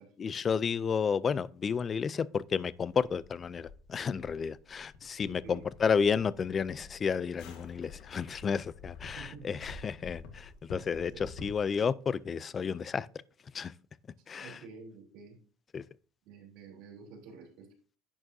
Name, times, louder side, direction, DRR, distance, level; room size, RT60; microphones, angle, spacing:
voice 1, 0.2-13.1 13.5-13.7 14.3-14.6 15.7-15.8, left 6 dB, 20° left, 0.3 m, -31 dB
sound 1, 2.4-11.8, left 4 dB, 55° left, 1.7 m, -50 dB
voice 2, 5.3-5.7 9.2-9.6 11.1-11.5 14.4-15.4 16.2-17.7, right 5 dB, 55° right, 3.2 m, -50 dB
11.0 x 8.8 x 2.7 m
cardioid pair, 165°, 0 cm